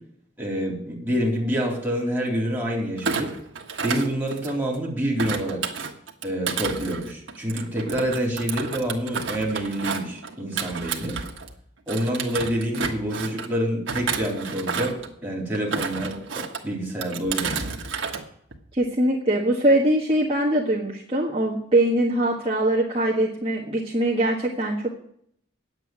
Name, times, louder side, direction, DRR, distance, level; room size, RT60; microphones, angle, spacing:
voice 1, 0.4-3.3 3.8-5.6 6.2-11.2 11.9-17.7, equal, 10° right, -3 dB, 3.7 m, -27 dB
Thump thud, 3.0-4.7 5.2-11.5 11.9-13.5 13.9-15.1 15.5-16.6 17.0-18.2 18.5-18.8, right 5 dB, 90° right, 1.5 m, -31 dB
voice 2, 18.7-24.9, right 1 dB, 30° right, -5 dB, 1.5 m, -22 dB
9.3 x 8.1 x 9.4 m, 0.69 s
head